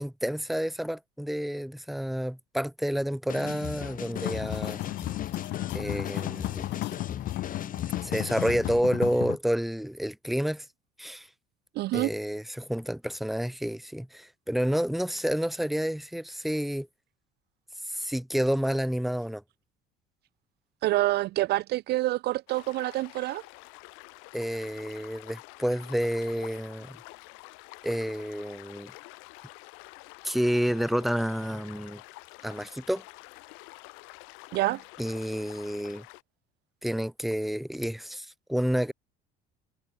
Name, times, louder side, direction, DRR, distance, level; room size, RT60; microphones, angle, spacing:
voice 1, 0.0-4.8 5.7-6.7 8.0-10.7 11.0-11.3 11.9-16.9 17.8-19.4 24.3-27.0 27.8-28.9 30.2-32.0 32.4-33.0 35.0-36.1 36.8-38.9, equal, ahead, 1.1 m, -29 dB
sound 1, 3.3-8.8, left 9 dB, 45° left, 1.8 m, -38 dB
sound 2, 4.1-9.4, left 16 dB, 65° left, 1.1 m, -34 dB
voice 2, 11.8-12.1 20.8-23.4 34.5-34.8, right 17 dB, 55° right, 0.4 m, -27 dB
sound 3, 22.5-36.2, left 31 dB, 85° left, 2.0 m, -48 dB
supercardioid pair, 100°, 20 cm